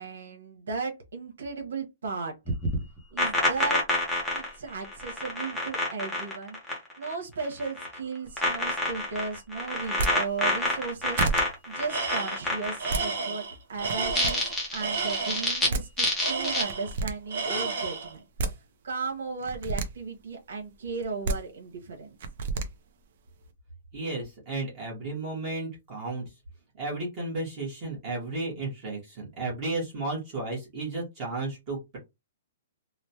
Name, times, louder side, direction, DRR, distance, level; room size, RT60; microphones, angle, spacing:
voice 1, 0.0-2.5 3.1-3.8 4.3-6.6 7.0-11.2 11.7-18.2 18.8-22.2, right 4 dB, 90° right, 1.0 m, -35 dB
sound 1, 2.5-7.1 7.4-8.0 8.4-13.1 14.0-15.7 16.0-16.6, left 1 dB, 5° left, 0.6 m, -28 dB
sound 2, 9.8-10.1 10.8-10.9 11.2-11.4 12.6-13.0 13.8-14.3 15.4-15.5 15.7-15.8 16.7-17.1 18.1-18.5 19.4-19.9 21.0-21.4 22.2-22.7, right 3 dB, 40° right, 0.5 m, -29 dB
Tools, 11.9-12.5 12.8-15.5 16.2-17.0 17.3-18.1, right 4 dB, 65° right, 1.4 m, -32 dB
voice 2, 23.9-26.2 26.8-32.0, right 2 dB, 20° right, 1.0 m, -33 dB
3.1 x 2.1 x 2.7 m
hypercardioid pair, 180°, 0 cm